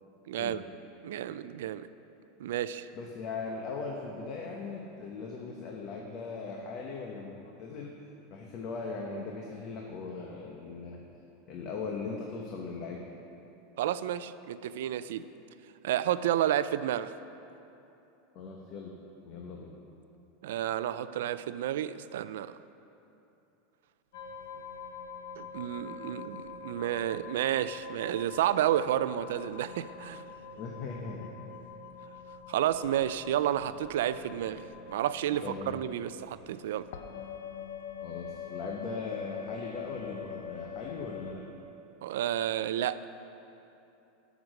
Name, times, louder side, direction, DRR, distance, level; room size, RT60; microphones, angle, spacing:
voice 1, 0.3-0.6 1.0-1.9 2.4-2.9 13.8-15.2 15.8-17.1 20.4-22.5 25.4-30.2 32.5-36.9 42.0-43.0, right 11 dB, 85° right, 14 dB, 0.4 m, -31 dB
voice 2, 2.9-7.9 8.3-11.0 11.5-13.0 18.3-18.9 19.2-19.7 30.6-31.3 35.4-35.7 38.0-41.4, left 4 dB, 45° left, 0 dB, 1.0 m, -39 dB
sound 1, 24.1-41.3, left 7 dB, 80° left, 0.8 m, -45 dB
12.0 x 6.1 x 6.4 m, 2.8 s
supercardioid pair, 145°, 0 cm